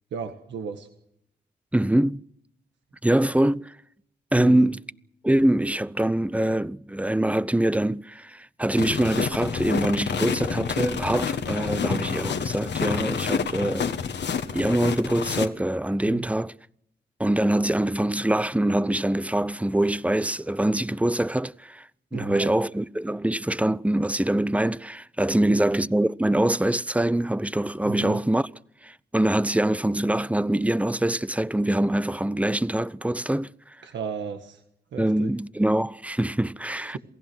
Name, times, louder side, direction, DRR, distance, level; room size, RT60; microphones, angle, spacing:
voice 1, 0.1-0.9 4.3-4.7 16.1-16.2 22.1-22.5 27.8-28.2 33.8-34.6 34.9-35.3 36.7-37.0, right 6 dB, 90° right, 1.6 m, -34 dB
voice 2, 1.7-2.2 3.0-3.7 4.3-4.8 5.2-14.0 14.5-16.5 17.2-28.5 28.8-33.8 35.0-37.0, right 1 dB, 5° right, 0.8 m, -24 dB
sound 1, 8.8-15.5, left 7 dB, 75° left, 1.5 m, -28 dB
27.5 x 17.5 x 6.2 m
cardioid pair, 45°, 18 cm